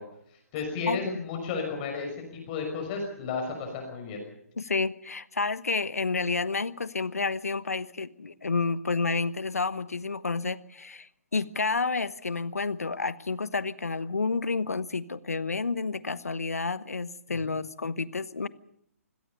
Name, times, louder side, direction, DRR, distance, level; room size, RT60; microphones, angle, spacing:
voice 1, 0.5-4.2 17.3-17.6, left 4 dB, 30° left, 2 dB, 5.9 m, -33 dB
voice 2, 4.6-18.5, left 4 dB, 75° left, 17 dB, 1.2 m, -30 dB
25.5 x 17.5 x 7.0 m, 0.72 s
figure-of-eight pair, 130°, 8 cm